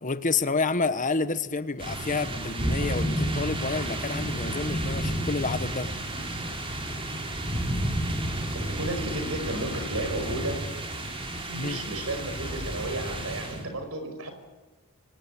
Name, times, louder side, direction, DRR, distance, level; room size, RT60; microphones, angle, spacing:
voice 1, 0.0-5.9 11.5-11.8, left 4 dB, 35° left, 1.1 m, -29 dB
sound 1, 1.8-13.6, right 1 dB, 25° right, 3.8 m, -31 dB
voice 2, 8.5-10.6 11.5-14.3, right 1 dB, 65° right, 5.5 m, -33 dB
25.5 x 18.5 x 8.7 m
head